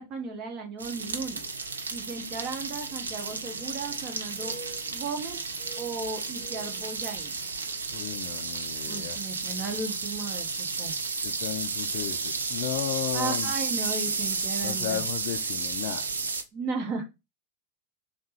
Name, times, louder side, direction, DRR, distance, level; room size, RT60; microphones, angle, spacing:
voice 1, 0.0-1.4 1.9-4.5 4.9-5.4 5.8-7.3 8.9-11.0 13.1-15.0 16.5-17.0, right 4 dB, 35° right, 0.9 m, -35 dB
sound 1, 0.8-16.4, right 4 dB, 75° right, 0.4 m, -32 dB
sound 2, 2.9-4.1 4.3-5.2 5.5-7.7 8.1-8.2 8.9-9.2 10.2-10.3 10.7-10.8, right 3 dB, 10° right, 0.6 m, -50 dB
voice 2, 7.9-9.2 11.2-13.5 14.6-16.1, left 13 dB, 50° left, 0.3 m, -34 dB
3.4 x 2.1 x 4.2 m
figure-of-eight pair, 90°, 0 cm